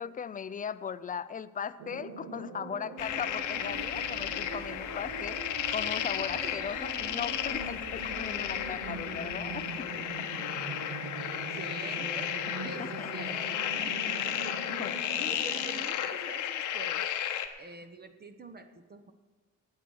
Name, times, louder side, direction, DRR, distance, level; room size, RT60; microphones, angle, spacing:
voice 1, 0.0-10.3 12.6-13.3 14.3-15.5, left 7 dB, 25° left, 15 dB, 0.5 m, -39 dB
sound 1, 1.8-15.9, right 4 dB, 80° right, 1.7 m, -42 dB
sound 2, 3.0-17.5, left 10 dB, 85° left, 1.0 m, -34 dB
sound 3, 3.0-10.4, equal, 10° right, 2.6 m, -51 dB
voice 2, 11.3-13.5 13.7-14.7 15.2-17.1 17.6-19.1, right 3 dB, 30° right, 7 dB, 1.0 m, -46 dB
19.5 x 8.3 x 4.7 m, 1.3 s
cardioid pair, 90°, 30 cm